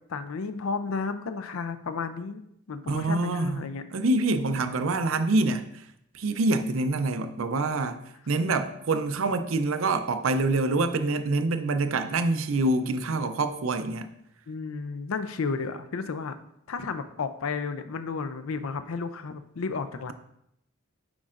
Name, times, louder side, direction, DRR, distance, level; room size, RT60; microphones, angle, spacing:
voice 1, 0.1-2.4 2.7-3.8 14.5-16.4 16.7-20.1, left 4 dB, 80° left, 11 dB, 0.5 m, -32 dB
voice 2, 2.8-3.6 3.9-5.7 6.1-8.0 8.3-14.1, right 2 dB, 70° right, 10 dB, 0.5 m, -26 dB
8.5 x 5.2 x 2.5 m, 0.76 s
head